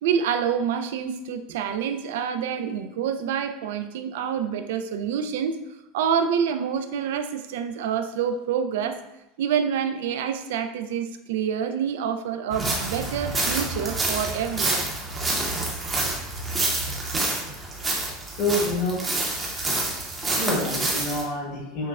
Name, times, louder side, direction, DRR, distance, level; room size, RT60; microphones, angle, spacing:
voice 1, 0.0-5.6 5.9-9.0 9.4-14.8 16.0-16.1, right 7 dB, 85° right, 8 dB, 0.3 m, -27 dB
sound 1, 12.5-21.2, right 2 dB, 15° right, 0.7 m, -28 dB
voice 2, 18.3-19.0 20.4-21.9, left 1 dB, 50° left, -7 dB, 1.4 m, -27 dB
6.2 x 2.1 x 2.4 m, 0.95 s
supercardioid pair, 150°, 0 cm